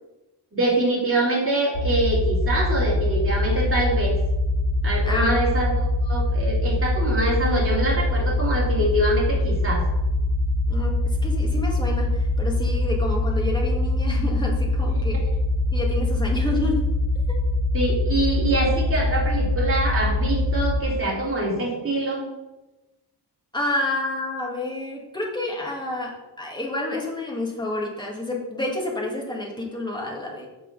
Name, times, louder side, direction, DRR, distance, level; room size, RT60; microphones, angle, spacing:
voice 1, 0.5-4.2 4.8-9.8 14.9-15.0 17.7-22.3, right 2 dB, 30° right, -4 dB, 2.6 m, -24 dB
sound 1, 1.7-20.8, left 2 dB, 55° left, 1.1 m, -23 dB
voice 2, 5.0-5.4 10.7-15.3 15.7-16.9 17.3-17.4 23.5-30.5, left 2 dB, 10° left, -2 dB, 1.6 m, -29 dB
6.7 x 5.9 x 5.2 m, 1.1 s
wide cardioid pair, 170°, 41 cm